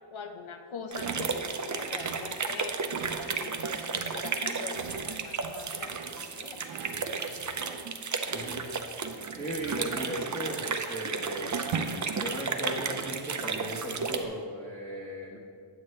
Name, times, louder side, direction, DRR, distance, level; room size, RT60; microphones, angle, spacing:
voice 1, 0.1-2.8 3.3-6.7, left 5 dB, 75° left, 5 dB, 0.8 m, -43 dB
sound 1, 0.9-14.2, right 5 dB, 40° right, 0.5 m, -33 dB
sound 2, 0.9-14.4, right 6 dB, 85° right, 0.6 m, -43 dB
voice 2, 8.3-8.7 9.4-11.6 12.2-15.4, equal, 10° left, -9 dB, 1.3 m, -37 dB
8.7 x 7.8 x 3.2 m, 2.3 s
wide cardioid pair, 105°, 49 cm